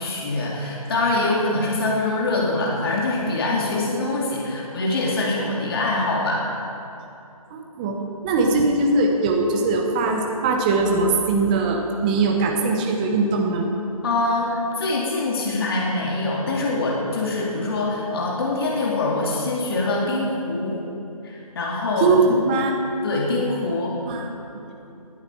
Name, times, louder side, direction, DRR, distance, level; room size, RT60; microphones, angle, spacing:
voice 1, 0.0-6.4 14.0-20.8 21.2-22.2 23.0-24.0, left 2 dB, 40° left, -3 dB, 2.5 m, -24 dB
voice 2, 7.5-13.7 22.0-22.7 24.1-24.6, right 3 dB, 15° right, 2 dB, 0.9 m, -21 dB
19.0 x 11.5 x 4.6 m, 2.8 s
figure-of-eight pair, 160°, 19 cm